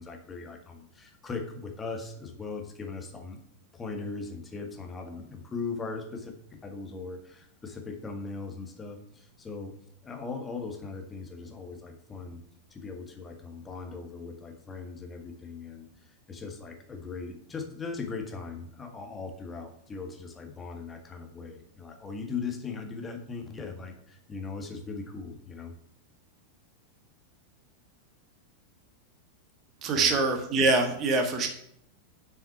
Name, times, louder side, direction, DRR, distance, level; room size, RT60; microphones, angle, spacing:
voice 1, 0.0-3.4 3.7-9.7 10.0-12.4 12.7-25.7 29.9-30.2, left 4 dB, 15° left, 4 dB, 1.8 m, -39 dB
voice 2, 29.8-31.5, right 3 dB, 30° right, 5 dB, 1.6 m, -24 dB
7.8 x 6.5 x 5.9 m, 0.71 s
figure-of-eight pair, 90°, 0 cm